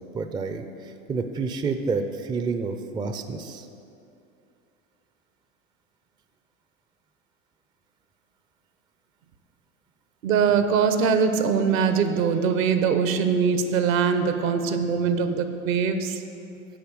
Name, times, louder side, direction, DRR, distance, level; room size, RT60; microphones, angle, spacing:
voice 1, 0.1-0.6 1.1-3.7, right 4 dB, 10° right, 7 dB, 0.4 m, -28 dB
voice 2, 10.2-16.2, right 6 dB, 70° right, 8 dB, 1.0 m, -22 dB
8.6 x 5.6 x 7.5 m, 2.6 s
hypercardioid pair, 95°, 41 cm